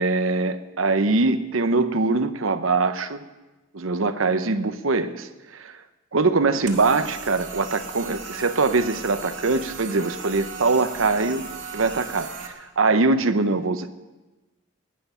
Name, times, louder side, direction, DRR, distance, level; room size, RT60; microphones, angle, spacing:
voice 1, 0.0-3.2 3.7-5.7 6.1-11.4 11.7-13.9, right 3 dB, 90° right, 10 dB, 0.9 m, -22 dB
sound 1, 6.7-12.5, right 5 dB, 70° right, 2.0 m, -37 dB
19.0 x 10.5 x 5.7 m, 1.1 s
head